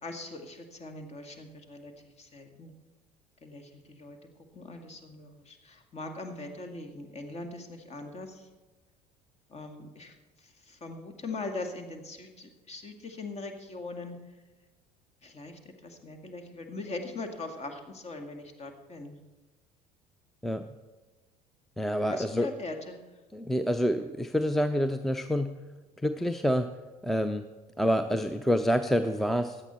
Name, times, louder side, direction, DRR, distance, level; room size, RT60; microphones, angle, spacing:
voice 1, 0.0-1.9 2.2-2.7 3.4-4.2 4.5-8.4 9.5-10.1 10.4-14.2 15.2-19.2 22.1-23.0, left 3 dB, 30° left, 6 dB, 2.0 m, -41 dB
voice 2, 21.8-22.5 23.3-25.5 26.0-26.7 27.0-27.4 27.8-29.6, equal, ahead, 10 dB, 0.6 m, -27 dB
16.0 x 11.0 x 4.3 m, 1.2 s
figure-of-eight pair, 60°, 20 cm